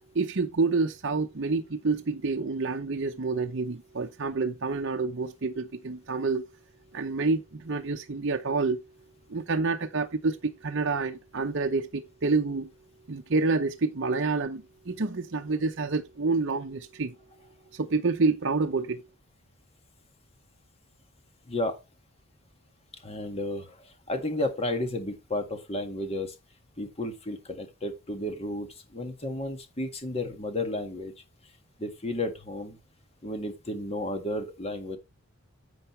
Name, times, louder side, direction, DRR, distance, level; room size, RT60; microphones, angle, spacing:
voice 1, 0.1-6.4 6.9-8.8 9.3-12.7 13.1-17.1 17.7-19.0, right 3 dB, 55° right, 0.7 m, -28 dB
voice 2, 23.0-26.4 26.8-31.1 31.8-32.8 33.2-35.0, left 1 dB, 25° left, 1.8 m, -32 dB
10.5 x 7.8 x 3.2 m
head